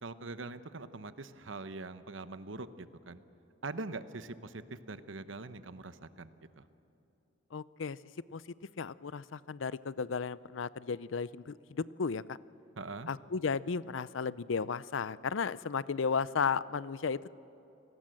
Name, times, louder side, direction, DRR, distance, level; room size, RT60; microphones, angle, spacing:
voice 1, 0.0-3.2 3.6-6.3 6.5-6.7 12.8-13.1, right 3 dB, 85° right, 12 dB, 1.0 m, -43 dB
voice 2, 7.5-8.0 8.3-8.4 8.8-12.4 13.1-17.3, left 5 dB, 85° left, 19 dB, 0.5 m, -34 dB
29.5 x 19.0 x 7.7 m, 3.0 s
head